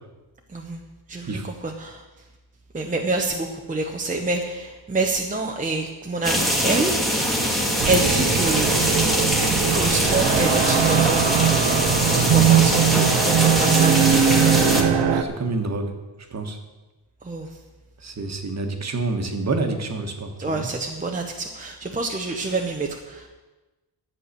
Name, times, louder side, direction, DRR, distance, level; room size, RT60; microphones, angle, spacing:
voice 1, 1.1-2.0 2.7-7.0 7.8-8.8 9.7-11.4 12.0-14.3 17.2-17.6 20.4-23.4, right 2 dB, 20° right, 1 dB, 0.8 m, -27 dB
sound 1, 6.2-14.8, equal, ahead, 1.6 m, -23 dB
sound 2, 7.8-15.2, right 8 dB, 75° right, 1.1 m, -20 dB
voice 2, 12.2-12.5 14.5-14.9 15.2-15.9 16.3-16.6 18.0-20.7, right 3 dB, 40° right, 5 dB, 1.5 m, -28 dB
11.5 x 8.6 x 6.7 m, 1.1 s
wide cardioid pair, 165°, 43 cm